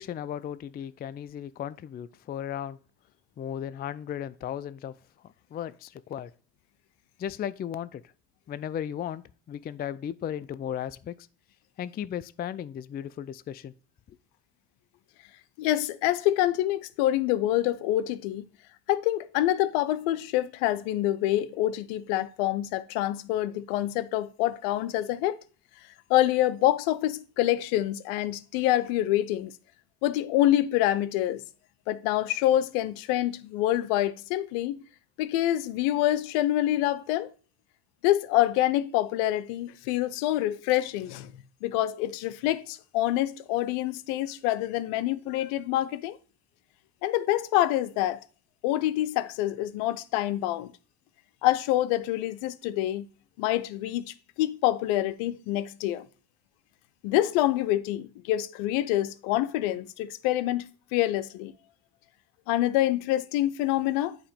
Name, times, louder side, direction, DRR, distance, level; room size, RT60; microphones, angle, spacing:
voice 1, 0.0-2.8 3.4-4.9 5.5-6.3 7.2-8.0 8.5-11.3 11.8-13.7, left 10 dB, 25° left, 0.3 m, -35 dB
voice 2, 15.6-18.4 18.9-25.4 26.1-29.5 30.0-31.4 31.9-34.8 35.2-37.3 38.0-41.3 41.6-46.2 47.0-48.2 48.6-50.7 51.4-53.1 53.4-56.1 57.0-61.5 62.5-64.2, left 14 dB, 75° left, 0.6 m, -26 dB
8.5 x 3.0 x 5.1 m
hypercardioid pair, 60°, 46 cm